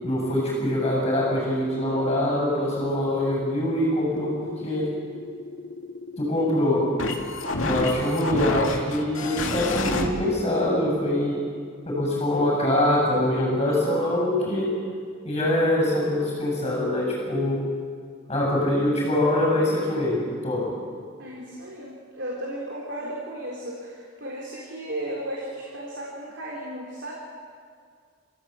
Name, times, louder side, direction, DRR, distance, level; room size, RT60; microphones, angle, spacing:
voice 1, 0.0-4.9 6.2-6.9 7.6-11.4 11.9-14.7 15.2-17.6 18.3-20.7, left 1 dB, 25° left, -3 dB, 7.3 m, -24 dB
sound 1, 4.2-10.1, left 2 dB, 75° left, 2.4 m, -30 dB
voice 2, 21.2-27.1, right 1 dB, 60° right, -3 dB, 3.8 m, -35 dB
29.5 x 15.5 x 8.2 m, 2.1 s
head